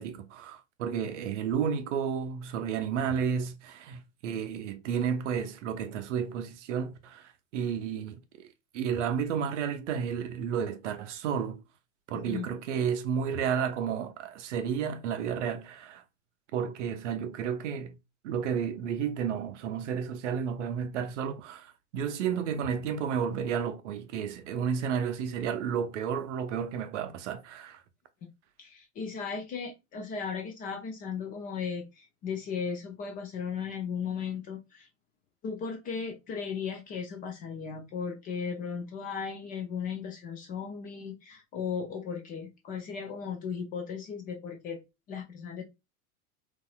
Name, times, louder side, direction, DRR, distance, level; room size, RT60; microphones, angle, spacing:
voice 1, 0.0-8.5 8.7-11.6 12.1-16.0 16.5-17.9 18.2-27.8, right 7 dB, 55° right, 0.6 m, -32 dB
voice 2, 28.6-34.9 35.4-44.8 45.1-45.6, left 6 dB, 20° left, 0.4 m, -36 dB
4.0 x 2.5 x 2.2 m
figure-of-eight pair, 85°, 44 cm